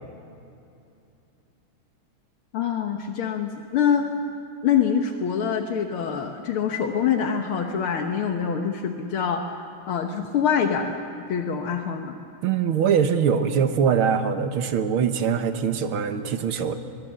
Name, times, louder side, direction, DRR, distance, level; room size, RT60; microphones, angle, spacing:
voice 1, 2.5-4.1 4.6-11.0 11.3-12.2, left 7 dB, 75° left, 4 dB, 2.0 m, -25 dB
voice 2, 12.4-16.7, right 7 dB, 75° right, 8 dB, 2.0 m, -22 dB
24.0 x 22.5 x 7.5 m, 2.7 s
omnidirectional pair, 2.4 m